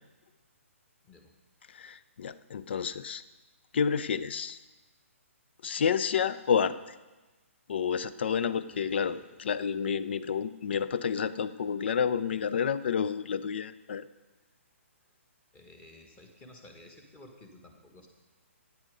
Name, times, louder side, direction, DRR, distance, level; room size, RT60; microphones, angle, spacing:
voice 1, 1.7-3.2 3.7-4.6 5.6-6.7 7.7-14.0, left 7 dB, 50° left, 15 dB, 0.6 m, -30 dB
voice 2, 8.7-9.4 15.5-18.1, left 1 dB, 15° left, 3 dB, 1.5 m, -53 dB
12.5 x 9.2 x 5.3 m, 1.2 s
figure-of-eight pair, 130°, 7 cm